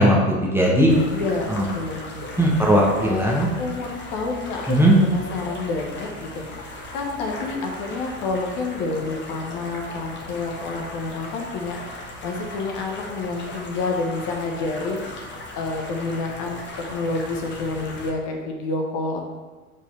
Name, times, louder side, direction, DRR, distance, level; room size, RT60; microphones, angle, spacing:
voice 1, 0.0-0.9 1.5-1.7 2.4-3.5 4.7-4.9, equal, 5° right, -3 dB, 0.9 m, -18 dB
sound 1, 0.9-18.1, left 2 dB, 25° left, 1.3 m, -38 dB
voice 2, 1.1-2.5 3.0-11.9 12.2-16.6 16.9-19.2, left 3 dB, 40° left, 2 dB, 1.2 m, -29 dB
5.2 x 4.4 x 5.4 m, 1.3 s
hypercardioid pair, 95°, 44 cm